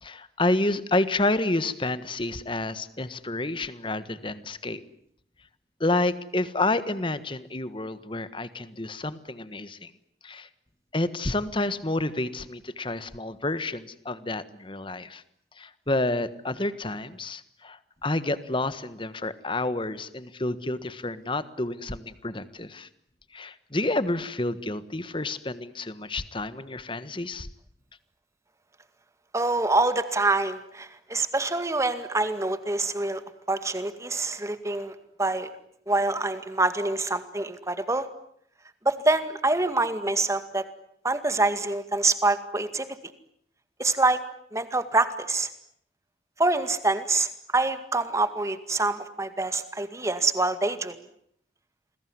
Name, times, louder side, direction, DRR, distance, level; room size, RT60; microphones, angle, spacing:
voice 1, 0.0-4.8 5.8-9.9 10.2-10.5 10.9-15.2 15.6-22.9 23.3-27.5, left 2 dB, 30° left, 14 dB, 1.5 m, -29 dB
voice 2, 29.3-33.2 33.5-35.5 35.9-38.1 38.9-40.6 41.0-42.9 43.8-44.2 44.5-45.5 46.4-51.0, right 2 dB, 15° right, 11 dB, 2.0 m, -26 dB
29.0 x 21.0 x 9.6 m, 0.67 s
head